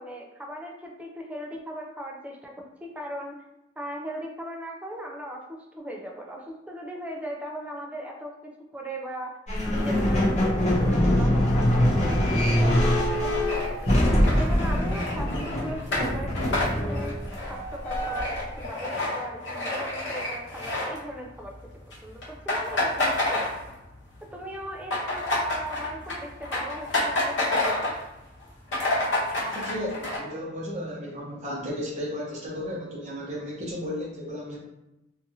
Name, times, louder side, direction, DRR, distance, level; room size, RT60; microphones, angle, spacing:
voice 1, 0.0-3.4 3.8-9.3 9.7-14.0 14.4-17.2 17.5-21.6 22.0-23.7 24.2-28.0, equal, 10° right, 0 dB, 0.4 m, -38 dB
sound 1, 9.5-18.6, left 1 dB, 40° left, 0.6 m, -24 dB
sound 2, 13.1-21.5 21.8-22.0 22.2-24.0 24.3-28.1 28.4-28.5 28.7-30.2, left 2 dB, 75° left, 0.9 m, -29 dB
voice 2, 29.4-34.6, left 1 dB, 40° right, -4 dB, 0.9 m, -34 dB
2.7 x 2.5 x 2.6 m, 0.93 s
head